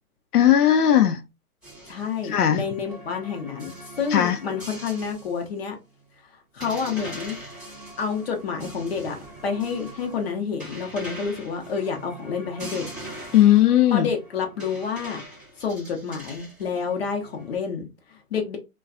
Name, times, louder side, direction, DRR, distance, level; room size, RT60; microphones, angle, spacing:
voice 1, 0.3-1.2 2.2-2.6 4.1-4.4 13.3-14.1, left 11 dB, 85° left, 0.5 m, -17 dB
sound 1, 1.6-5.5 5.8-5.9 6.6-17.6, right 1 dB, ahead, 0.8 m, -42 dB
voice 2, 1.9-3.7 4.0-5.8 6.5-7.7 8.0-9.2 9.4-12.9 13.9-15.2 15.6-17.9 18.3-18.6, left 6 dB, 45° left, 0.7 m, -29 dB
2.5 x 2.2 x 2.4 m
hypercardioid pair, 165°, 44 cm